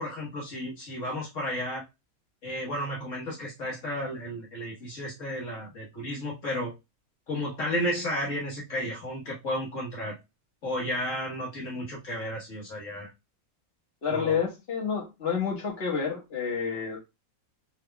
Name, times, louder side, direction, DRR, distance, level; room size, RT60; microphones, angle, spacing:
voice 1, 0.0-1.8 2.4-6.7 7.3-10.2 10.6-13.1 14.1-14.4, equal, 60° left, 1.6 m, -33 dB
voice 2, 14.0-17.0, left 6 dB, 45° left, 1.6 m, -29 dB
5.3 x 3.6 x 2.3 m
omnidirectional pair, 1.5 m